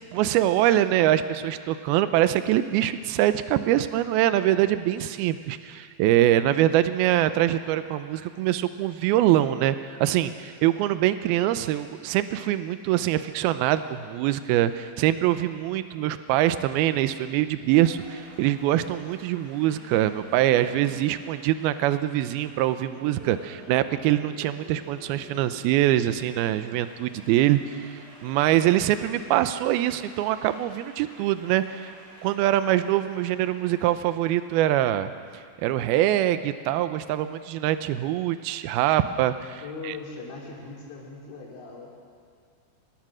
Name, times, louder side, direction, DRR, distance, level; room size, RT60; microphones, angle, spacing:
voice 1, 0.1-27.9 28.2-31.9 32.2-35.1 35.6-39.9, right 13 dB, 85° right, 11 dB, 2.3 m, -24 dB
Applause, 15.8-34.8, right 1 dB, 60° right, 7.6 m, -50 dB
voice 2, 39.6-41.9, left 4 dB, 80° left, -2 dB, 6.0 m, -39 dB
25.0 x 19.5 x 6.3 m, 2.2 s
omnidirectional pair, 5.1 m